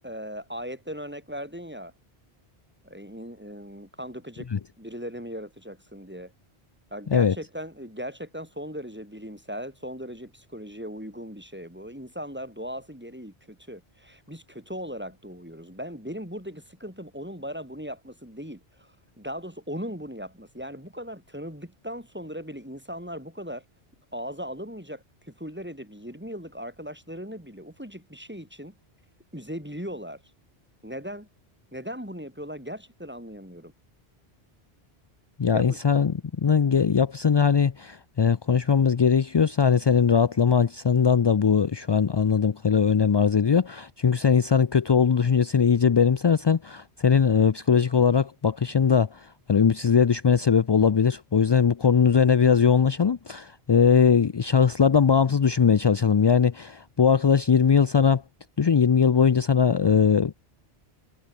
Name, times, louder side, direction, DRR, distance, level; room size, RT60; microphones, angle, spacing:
voice 1, 0.0-1.9 2.8-4.5 4.8-6.3 6.9-23.6 24.1-28.7 29.3-30.2 30.8-31.3 31.7-33.7 35.5-35.8, equal, 10° right, 7.9 m, -38 dB
voice 2, 35.4-58.2 58.6-60.3, left 6 dB, 45° left, 0.3 m, -20 dB
omnidirectional pair, 1.1 m